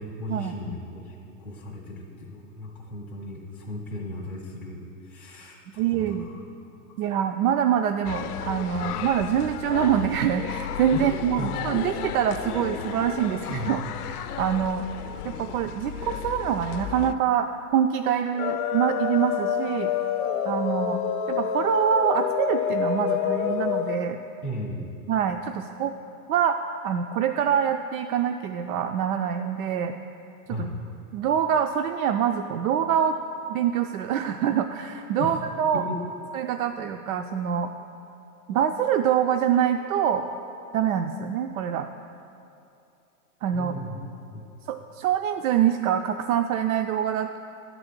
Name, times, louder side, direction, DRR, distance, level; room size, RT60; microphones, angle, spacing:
voice 1, 0.0-6.4 10.9-11.5 13.5-13.8 24.4-24.9 30.5-30.8 35.2-35.4 35.7-36.0 43.5-44.0 44.3-44.4, left 1 dB, 5° left, -6 dB, 0.3 m, -36 dB
voice 2, 5.8-6.2 7.0-13.8 14.1-14.9 15.2-19.9 20.4-21.0 21.3-24.2 25.1-25.9 26.3-29.9 30.5-30.7 31.1-33.2 33.5-35.8 36.3-37.7 38.5-40.3 40.7-41.9 43.4-43.7 44.7-47.4, right 9 dB, 70° right, 6 dB, 0.5 m, -25 dB
sound 1, 8.0-17.1, left 10 dB, 85° left, 0.5 m, -34 dB
sound 2, 18.4-24.0, left 8 dB, 50° left, 0.6 m, -27 dB
10.5 x 4.1 x 7.2 m, 2.7 s
supercardioid pair, 145°, 45 cm